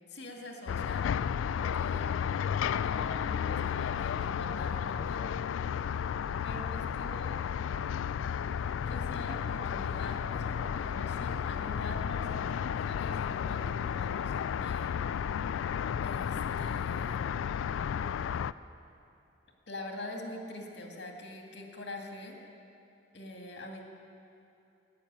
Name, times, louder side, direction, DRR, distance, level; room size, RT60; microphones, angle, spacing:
voice 1, 0.1-1.1 1.6-2.1 2.6-5.3 6.4-7.4 8.9-14.9 16.0-17.2 19.7-22.4 23.1-23.8, left 1 dB, 70° left, 1 dB, 2.0 m, -44 dB
sound 1, 0.7-18.5, left 8 dB, 90° left, 0.3 m, -33 dB
12.5 x 9.1 x 9.4 m, 2.6 s
head